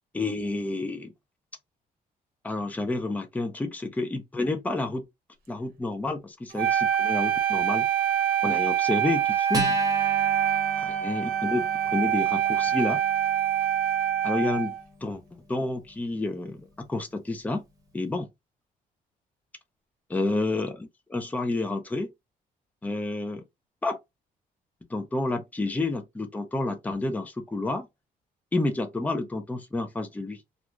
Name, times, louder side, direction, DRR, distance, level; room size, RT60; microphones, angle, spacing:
voice 1, 0.1-1.1 2.4-5.1 5.5-7.9 8.4-9.8 10.8-13.0 14.2-14.7 15.0-15.2 15.5-17.6 17.9-18.3 20.1-22.1 22.8-23.4 23.8-24.0 24.9-27.9 28.5-30.4, left 2 dB, 10° left, 0.6 m, -29 dB
Wind instrument woodwind instrument, 6.5-14.8, right 10 dB, 75° right, 0.7 m, -25 dB
Acoustic guitar, 9.5-16.4, right 2 dB, 25° right, 1.2 m, -38 dB
2.5 x 2.3 x 3.0 m
cardioid pair, 125°, 16 cm